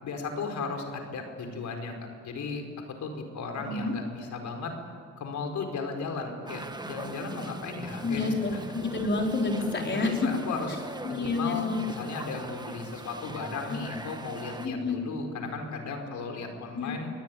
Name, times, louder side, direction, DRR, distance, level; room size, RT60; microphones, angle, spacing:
voice 1, 0.0-1.9 2.2-2.6 3.0-4.7 5.2-8.6 9.7-17.1, left 4 dB, 70° left, 4 dB, 4.9 m, -35 dB
voice 2, 3.6-3.9 8.0-10.3 11.0-11.8 13.7-13.8 14.6-15.0 16.7-16.9, left 3 dB, 35° left, 1 dB, 4.8 m, -29 dB
sound 1, 6.5-14.7, right 2 dB, 15° right, 1.6 m, -42 dB
26.0 x 19.5 x 8.8 m, 2.5 s
cardioid pair, 90°, 30 cm